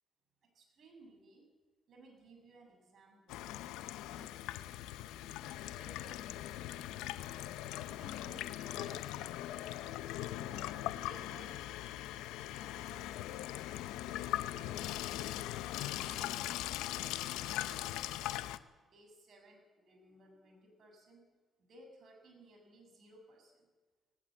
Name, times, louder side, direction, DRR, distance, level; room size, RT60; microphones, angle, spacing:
voice 1, 0.4-1.5 1.9-3.5 3.9-4.7 5.0-6.7 7.5-9.5 10.2-11.6 12.4-13.1 14.1-15.0 15.6-18.2 18.8-21.2 21.7-23.7, right 1 dB, 65° right, 3 dB, 7.1 m, -60 dB
Water tap faucet / Sink (filling or washing), 3.3-18.6, left 14 dB, 90° left, 0.7 m, -40 dB
18.5 x 18.5 x 7.7 m, 1.3 s
supercardioid pair, 60°, 0 cm